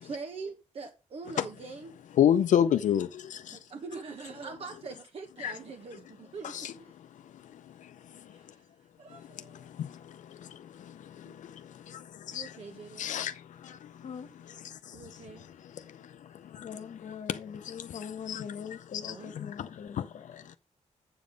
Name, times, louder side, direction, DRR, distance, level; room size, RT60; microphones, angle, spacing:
voice 1, 0.0-1.9 3.5-7.0 8.3-8.6 9.0-9.7 11.2-11.4 12.3-13.1 14.9-15.5 19.1-19.3, right 4 dB, 50° right, 1.3 m, -43 dB
voice 2, 2.2-3.4 5.4-5.5 6.4-6.7 12.3-12.5 13.0-13.3 18.3-18.4 19.0-19.1, left 9 dB, 85° left, 0.5 m, -25 dB
voice 3, 16.3-20.4, left 7 dB, 65° left, 1.1 m, -42 dB
7.9 x 7.3 x 5.2 m
wide cardioid pair, 180°, 13 cm